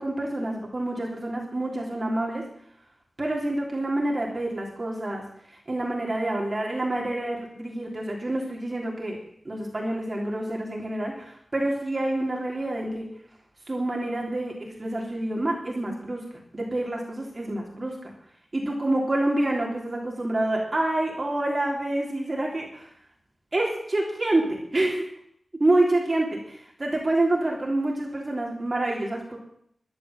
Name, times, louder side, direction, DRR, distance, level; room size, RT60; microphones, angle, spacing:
voice 1, 0.0-2.5 3.2-9.2 9.4-13.1 13.7-16.3 16.5-18.1 18.5-22.9 23.5-25.1 25.5-29.4, right 1 dB, 35° right, -1 dB, 3.2 m, -27 dB
12.5 x 10.5 x 7.2 m, 0.66 s
wide cardioid pair, 100°, 0 cm